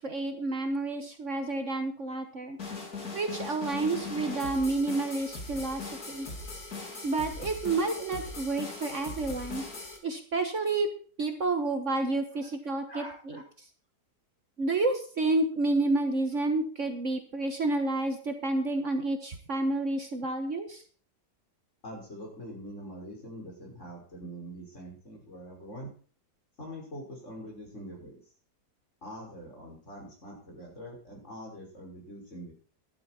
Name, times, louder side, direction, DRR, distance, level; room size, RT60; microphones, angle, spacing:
voice 1, 0.0-2.6 3.1-6.3 7.0-9.6 10.0-10.9 11.2-13.4 14.6-20.8, right 2 dB, 50° right, 5 dB, 1.6 m, -30 dB
sound 1, 2.6-10.0, left 3 dB, 60° left, 3.3 m, -40 dB
voice 2, 12.9-13.4 21.8-25.9 26.6-28.1 29.0-32.5, equal, 45° left, -1 dB, 5.9 m, -44 dB
13.0 x 11.5 x 4.3 m, 0.42 s
omnidirectional pair, 1.8 m